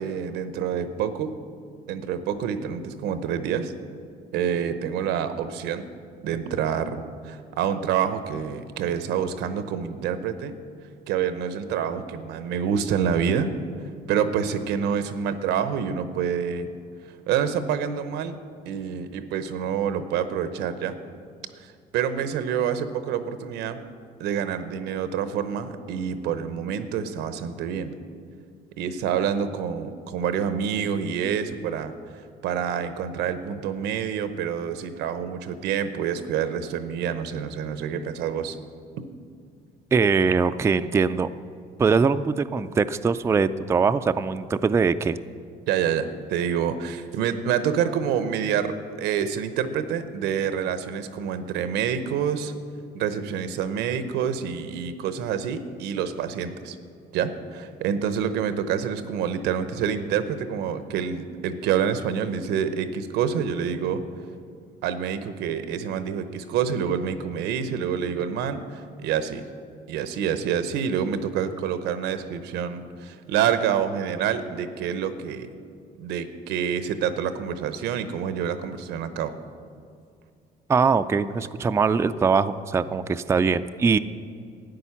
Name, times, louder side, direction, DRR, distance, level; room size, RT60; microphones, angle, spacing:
voice 1, 0.0-1.3 1.9-3.7 4.3-5.9 6.2-10.6 11.1-13.5 14.1-16.7 17.3-18.4 18.7-21.0 21.6-23.8 24.2-28.0 28.8-38.6 45.7-52.5 52.9-56.8 57.1-64.0 64.8-69.4 69.9-75.5 76.0-79.4, right 8 dB, 90° right, 11 dB, 0.8 m, -27 dB
voice 2, 39.9-41.3 41.8-45.2 80.7-84.0, right 5 dB, 15° right, 11 dB, 0.3 m, -22 dB
13.0 x 9.2 x 5.8 m, 2.3 s
cardioid pair, 110°, 17 cm